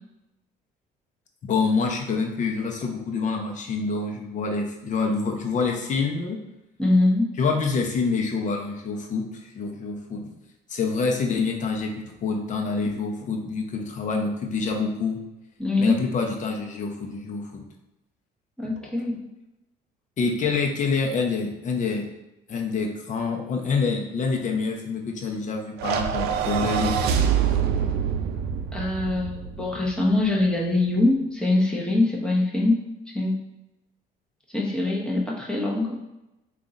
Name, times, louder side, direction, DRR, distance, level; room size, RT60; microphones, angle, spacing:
voice 1, 1.4-6.4 7.4-9.3 9.5-10.3 10.7-15.2 15.8-17.6 18.8-18.9 20.2-22.1 22.5-27.0, left 4 dB, 45° left, 2 dB, 0.8 m, -26 dB
voice 2, 6.8-7.3 15.6-16.0 18.6-19.3 28.7-33.4 34.5-36.0, left 2 dB, 5° left, -3 dB, 0.9 m, -23 dB
sound 1, 25.8-30.2, right 7 dB, 75° right, 0.4 m, -25 dB
3.6 x 2.5 x 4.0 m, 0.95 s
cardioid pair, 110°, 17 cm